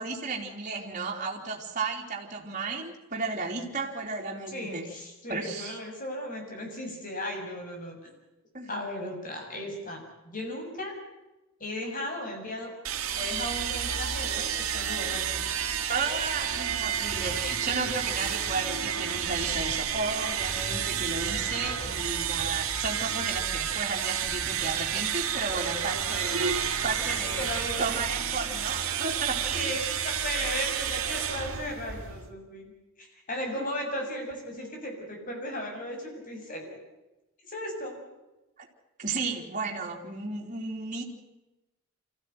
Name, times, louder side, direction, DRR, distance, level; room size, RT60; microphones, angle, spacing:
voice 1, 0.0-4.9 5.3-5.8 8.5-8.7 15.9-27.5 27.8-29.7 33.6-33.7 38.6-38.7 39.0-41.0, right 4 dB, 35° right, -1 dB, 3.5 m, -33 dB
voice 2, 4.5-8.1 8.7-11.0 11.6-12.7 13.1-15.5 27.0-27.9 29.5-32.7 33.0-36.7 37.5-38.0, left 1 dB, 40° left, 2 dB, 7.0 m, -36 dB
sound 1, 12.8-32.3, right 8 dB, 85° right, 2.6 m, -30 dB
25.5 x 16.0 x 9.4 m, 1.0 s
head